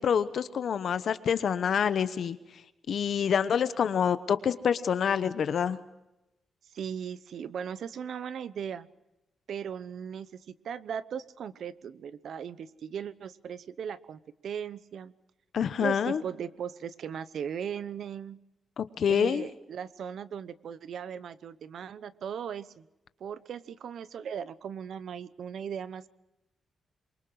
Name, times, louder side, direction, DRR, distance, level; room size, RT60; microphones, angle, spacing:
voice 1, 0.0-2.4 2.9-5.8 15.5-16.2 18.8-19.5, left 7 dB, 55° left, 12 dB, 1.0 m, -27 dB
voice 2, 6.7-8.9 9.5-15.1 15.8-18.4 19.1-22.9 23.2-26.1, right 8 dB, 65° right, 15 dB, 0.9 m, -38 dB
27.0 x 23.5 x 4.8 m, 0.93 s
wide cardioid pair, 165°, 0 cm